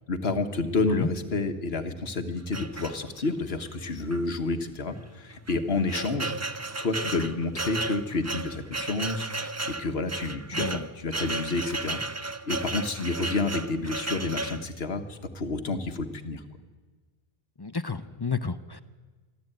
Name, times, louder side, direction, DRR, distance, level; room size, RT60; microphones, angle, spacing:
voice 1, 0.1-6.4 6.8-12.0 12.5-16.4, left 3 dB, 80° left, 7 dB, 1.7 m, -29 dB
sound 1, 2.5-3.4 4.1-4.2 4.5-4.6 5.3-14.7, right 2 dB, 20° right, 0.5 m, -34 dB
voice 2, 10.5-10.9 17.6-18.8, left 4 dB, 25° left, 13 dB, 0.7 m, -31 dB
24.5 x 14.0 x 9.1 m, 1.4 s
omnidirectional pair, 1.0 m